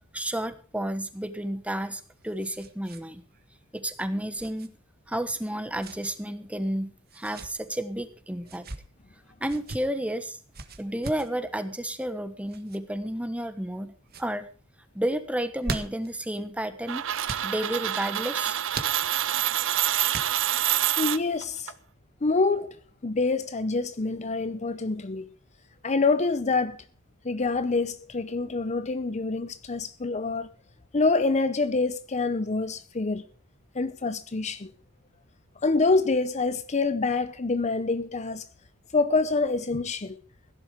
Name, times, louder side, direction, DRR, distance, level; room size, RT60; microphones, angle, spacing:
voice 1, 0.1-3.2 3.7-4.7 5.1-8.7 9.4-10.4 10.8-13.9 14.2-14.5 14.9-17.0 17.4-18.6, right 1 dB, 5° right, 1.3 m, -31 dB
sound 1, 1.8-3.0 3.3-3.4 4.4-4.7 5.8-6.2 7.1-7.5 8.4-8.8 9.5-9.8 10.5-11.3 12.5-12.8 13.4-13.8 14.1-14.3 15.4-16.1 17.2-17.5 18.7-19.4 20.1-20.6, right 3 dB, 45° right, 1.6 m, -38 dB
sound 2, 16.9-21.7, right 12 dB, 65° right, 0.8 m, -27 dB
voice 2, 21.0-21.7 22.2-25.3 25.8-26.8 27.2-30.5 30.9-33.3 33.7-34.7 35.6-38.4 38.9-40.2, left 3 dB, 35° left, 0.7 m, -26 dB
16.5 x 11.0 x 5.0 m
head